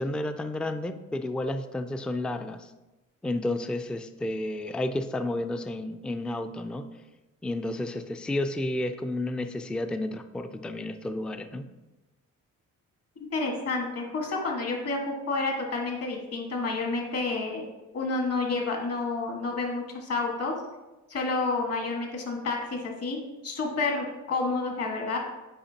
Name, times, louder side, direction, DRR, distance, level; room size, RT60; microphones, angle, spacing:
voice 1, 0.0-2.7 3.2-6.9 7.4-11.7, left 1 dB, 5° left, 8 dB, 0.3 m, -31 dB
voice 2, 13.2-17.7 17.9-20.5 21.1-25.2, left 3 dB, 55° left, 1 dB, 1.6 m, -30 dB
8.7 x 5.0 x 2.8 m, 1.1 s
cardioid pair, 90°, 30 cm